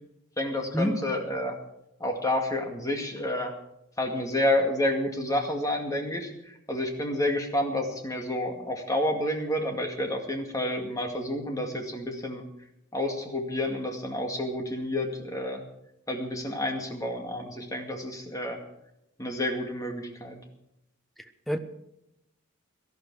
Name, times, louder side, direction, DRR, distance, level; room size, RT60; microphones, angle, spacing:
voice 1, 0.4-1.6 2.0-3.6 4.0-12.4 12.9-15.6 16.1-18.6 19.2-20.4, left 1 dB, 15° left, 3 dB, 2.1 m, -29 dB
voice 2, 21.2-21.6, equal, ahead, 8 dB, 0.9 m, -28 dB
18.0 x 13.0 x 4.8 m, 0.82 s
head